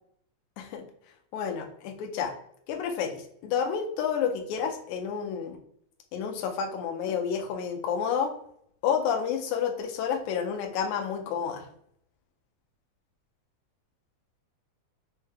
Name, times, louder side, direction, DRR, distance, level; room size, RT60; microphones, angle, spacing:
voice 1, 0.6-0.9 1.3-2.3 2.7-5.6 6.1-8.3 8.8-11.7, left 7 dB, 80° left, 3 dB, 2.0 m, -30 dB
5.5 x 2.1 x 3.3 m, 0.69 s
omnidirectional pair, 3.4 m